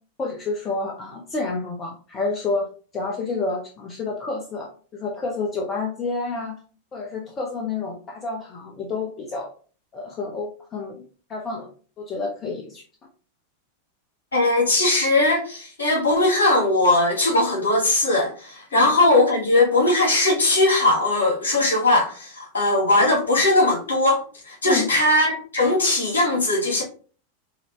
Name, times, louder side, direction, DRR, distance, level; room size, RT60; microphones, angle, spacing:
voice 1, 0.2-2.7 2.9-6.6 6.9-9.5 9.9-11.7 12.0-12.8 18.7-18.9 24.6-24.9, left 3 dB, 25° left, 0.9 m, -29 dB
voice 2, 14.3-26.8, left 2 dB, 70° left, 2.4 m, -19 dB
5.0 x 2.8 x 3.1 m
figure-of-eight pair, 90°, 0 cm